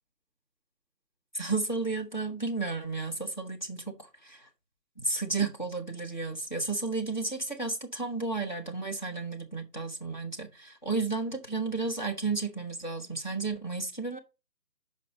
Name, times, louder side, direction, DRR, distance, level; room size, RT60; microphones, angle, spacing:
voice 1, 1.3-4.5 5.0-14.2, right 3 dB, 30° left, 0.8 m, -32 dB
6.8 x 5.2 x 4.2 m
figure-of-eight pair, 160°, 49 cm